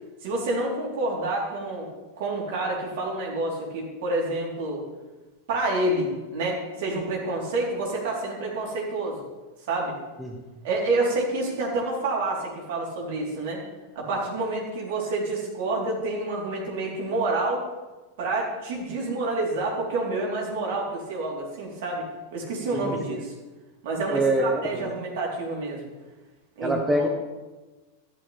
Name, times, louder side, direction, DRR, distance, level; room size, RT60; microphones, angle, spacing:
voice 1, 0.2-1.9 2.2-4.9 5.5-9.2 9.7-10.0 10.6-13.6 14.0-17.7 18.2-23.3 23.8-25.9 26.6-27.1, right 2 dB, 50° right, -2 dB, 3.9 m, -28 dB
voice 2, 22.7-23.2 24.1-24.9 26.6-27.1, right 1 dB, 5° right, 2 dB, 1.2 m, -25 dB
14.0 x 11.5 x 3.5 m, 1.2 s
figure-of-eight pair, 90°, 0 cm